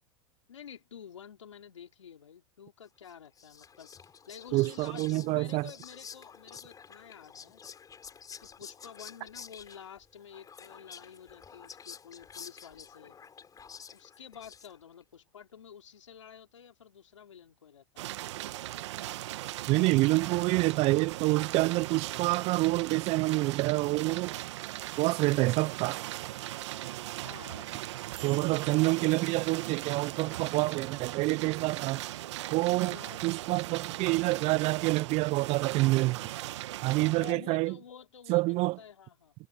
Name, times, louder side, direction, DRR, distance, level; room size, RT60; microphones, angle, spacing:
voice 1, 0.5-7.6 8.6-13.2 13.9-18.1 27.2-27.7 32.1-32.2 32.7-33.4 37.2-39.3, left 8 dB, 90° left, 3.7 m, -50 dB
Whispering, 3.1-15.0, left 6 dB, 25° left, 7.1 m, -50 dB
voice 2, 4.5-5.7 19.7-24.4 25.0-26.0 28.2-32.0 32.5-33.0 33.2-36.2 36.8-37.8 38.3-38.8, right 22 dB, 40° right, 0.4 m, -27 dB
sound 1, 18.0-37.3, right 15 dB, 70° right, 1.3 m, -39 dB
hypercardioid pair, 100°, 15 cm